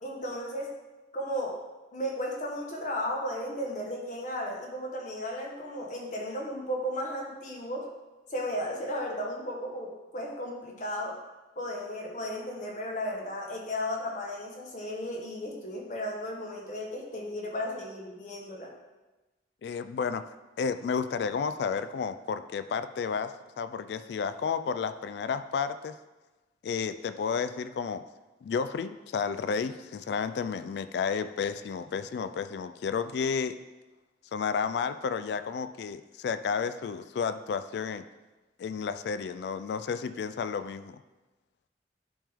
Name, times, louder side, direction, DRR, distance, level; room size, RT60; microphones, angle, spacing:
voice 1, 0.0-0.7 1.1-1.6 1.9-7.9 8.3-11.2 11.6-18.7, equal, 45° left, 0 dB, 1.1 m, -35 dB
voice 2, 19.6-20.2 20.6-25.9 26.6-28.0 28.4-33.6 34.3-38.0 38.6-41.0, left 6 dB, 70° left, 11 dB, 0.3 m, -32 dB
10.0 x 3.6 x 3.5 m, 1.1 s
head